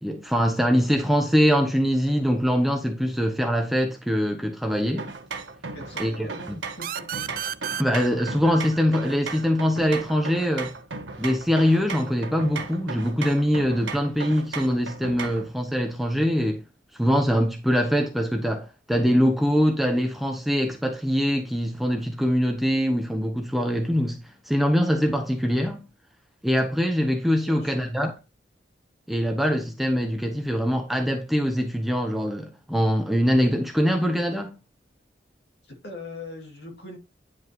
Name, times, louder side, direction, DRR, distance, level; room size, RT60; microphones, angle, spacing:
voice 1, 0.0-5.1 6.0-6.6 7.8-10.7 11.2-16.6 17.0-25.8 26.4-28.1 29.1-34.6, equal, ahead, 0.9 m, -23 dB
sound 1, 5.0-15.5, right 4 dB, 85° right, 1.0 m, -36 dB
voice 2, 5.7-6.5 6.8-7.1 27.4-28.1 35.6-37.0, left 2 dB, 60° left, 2.8 m, -41 dB
sound 2, 6.8-10.2, right 9 dB, 50° right, 0.4 m, -34 dB
10.0 x 5.1 x 3.1 m
head